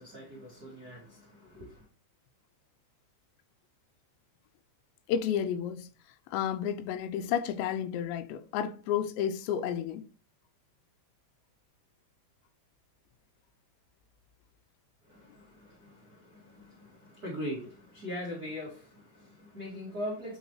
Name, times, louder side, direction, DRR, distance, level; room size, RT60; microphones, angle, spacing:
voice 1, 0.0-1.9 15.0-20.4, equal, 55° right, 1.1 m, -41 dB
voice 2, 5.1-5.9 6.3-10.0, left 9 dB, 90° left, 2.9 m, -31 dB
8.2 x 4.0 x 3.0 m
omnidirectional pair, 5.0 m